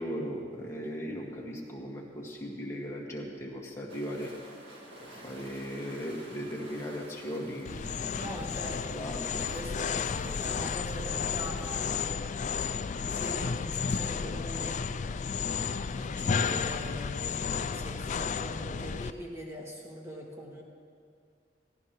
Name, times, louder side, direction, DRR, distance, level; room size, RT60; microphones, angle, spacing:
voice 1, 0.0-4.3 5.1-7.8 8.1-8.3 8.9-9.5, equal, 15° left, -3 dB, 1.9 m, -37 dB
sound 1, 3.9-12.0, right 1 dB, 85° right, 1.9 m, -50 dB
sound 2, 7.6-19.1, left 6 dB, 45° left, 0.4 m, -32 dB
voice 2, 8.1-9.1 9.5-12.1 12.8-14.8 15.9-20.6, equal, 15° right, -2 dB, 2.1 m, -42 dB
18.5 x 15.5 x 3.1 m, 2.1 s
head